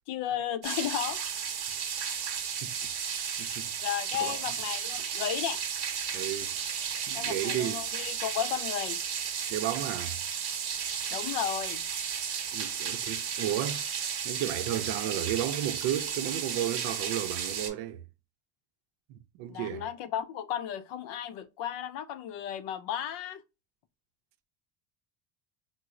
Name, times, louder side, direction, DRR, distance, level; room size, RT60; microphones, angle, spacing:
voice 1, 0.1-1.3 2.1-2.3 3.8-5.6 7.1-9.0 11.1-11.8 19.5-23.4, left 10 dB, 65° left, 0.6 m, -34 dB
sound 1, 0.6-17.7, right 7 dB, 50° right, 0.9 m, -34 dB
voice 2, 1.7-3.7 4.2-4.4 6.1-6.5 7.1-7.8 9.5-10.2 12.5-18.0 19.1-19.8, right 11 dB, 65° right, 0.6 m, -34 dB
3.0 x 2.0 x 3.6 m
cardioid pair, 120°, 49 cm